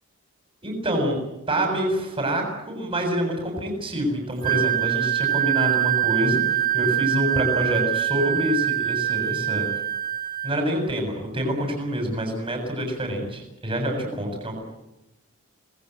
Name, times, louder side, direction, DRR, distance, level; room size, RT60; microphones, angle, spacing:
voice 1, 0.6-1.2 1.5-9.7 10.4-14.6, equal, 25° right, 3 dB, 7.3 m, -26 dB
Wind instrument woodwind instrument, 4.4-10.6, right 12 dB, 40° right, 1.9 m, -24 dB
27.0 x 20.5 x 8.3 m, 0.93 s
head